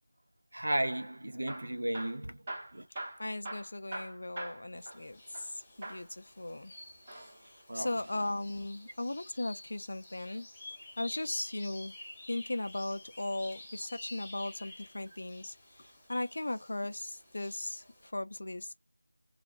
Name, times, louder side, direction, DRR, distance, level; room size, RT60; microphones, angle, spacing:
voice 1, 0.5-2.4 2.7-2.8 7.7-7.9, right 1 dB, 60° right, 0.6 m, -34 dB
Hammer / Drill, 1.3-5.5 5.8-6.1 6.9-8.4 10.1-11.4 13.1-13.5 14.2-15.1 15.8-16.0 16.3-16.4 17.0-17.1, right 1 dB, 20° right, 0.8 m, -45 dB
voice 2, 2.9-6.8 7.4-10.5 11.0-11.9 12.3-18.7, left 2 dB, 55° left, 0.4 m, -37 dB
sound 1, 4.8-18.1, left 2 dB, 10° left, 0.8 m, -51 dB
2.2 x 2.0 x 2.7 m
figure-of-eight pair, 170°, 0 cm